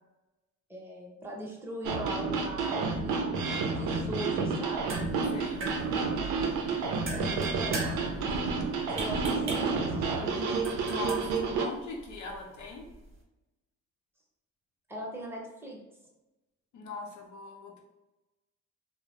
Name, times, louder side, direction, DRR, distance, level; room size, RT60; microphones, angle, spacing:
voice 1, 0.7-3.4 3.7-4.9 7.1-10.4 14.9-15.8, equal, 10° right, -2 dB, 0.7 m, -40 dB
sound 1, 1.8-11.7, right 4 dB, 90° right, 0.5 m, -30 dB
sound 2, 4.6-13.2, right 3 dB, 45° right, 0.8 m, -43 dB
voice 2, 5.3-5.7 10.8-12.8 16.7-17.8, left 2 dB, 75° left, 0 dB, 0.7 m, -40 dB
2.4 x 2.0 x 3.0 m, 1.0 s
cardioid pair, 90°, 30 cm